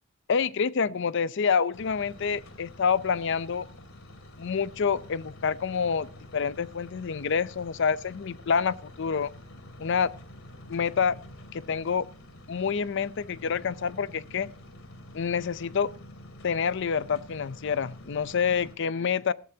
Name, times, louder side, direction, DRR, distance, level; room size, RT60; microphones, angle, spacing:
voice 1, 0.3-3.7 4.4-6.1 6.3-9.3 9.8-10.1 10.7-11.2 11.5-12.1 12.5-14.5 15.1-15.9 16.4-19.3, left 6 dB, 60° left, 0.5 m, -27 dB
sound 1, 1.7-18.8, left 1 dB, 85° left, 2.6 m, -48 dB
17.5 x 14.0 x 2.8 m
head